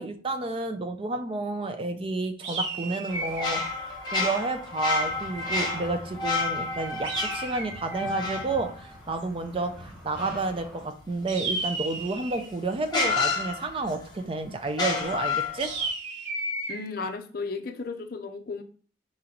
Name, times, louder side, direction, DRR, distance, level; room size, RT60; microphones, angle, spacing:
voice 1, 0.0-15.7, right 3 dB, 30° right, 7 dB, 0.4 m, -31 dB
sound 1, 2.4-3.6 7.0-8.1 11.3-12.5 15.6-16.8, right 2 dB, 75° right, 0.8 m, -33 dB
sound 2, 3.1-9.7 12.0-12.1 12.9-14.1 14.7-15.8, left 3 dB, 20° left, 1.0 m, -30 dB
sound 3, 5.0-10.9, equal, 5° right, 1.3 m, -45 dB
voice 2, 16.7-18.6, left 4 dB, 50° left, 5 dB, 0.5 m, -34 dB
4.2 x 2.9 x 3.8 m, 0.41 s
head